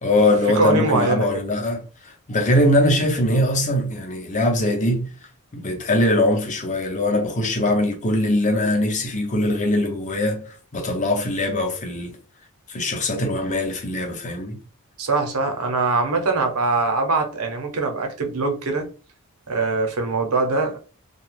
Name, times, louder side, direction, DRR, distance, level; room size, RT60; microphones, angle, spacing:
voice 1, 0.0-5.1 5.5-12.2 12.7-14.6, left 1 dB, 35° left, 0.7 m, -21 dB
voice 2, 0.6-1.5 15.0-18.9 19.5-20.8, right 3 dB, 85° right, 0.8 m, -22 dB
2.8 x 2.3 x 3.2 m
head